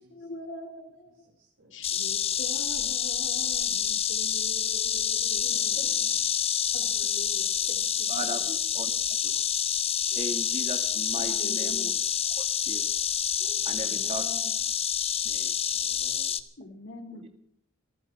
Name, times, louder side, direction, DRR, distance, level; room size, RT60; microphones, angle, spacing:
voice 1, 0.0-1.3 1.7-6.1 6.7-8.4 11.2-11.9 13.8-14.5 16.6-17.2, left 1 dB, 60° left, 6 dB, 2.7 m, -43 dB
voice 2, 1.1-2.3 3.9-4.0 5.2-6.3 6.6-6.8 13.6-14.2 15.7-16.4, right 2 dB, 80° right, -6 dB, 7.0 m, -57 dB
Insect, 1.8-16.4, left 9 dB, 30° left, 0.8 m, -28 dB
voice 3, 8.1-8.9 9.2-9.4 10.1-11.9 12.6-12.8 13.4-14.3 15.2-15.6 17.2-17.3, right 2 dB, 30° right, 6 dB, 2.0 m, -37 dB
27.5 x 14.5 x 3.5 m, 0.67 s
head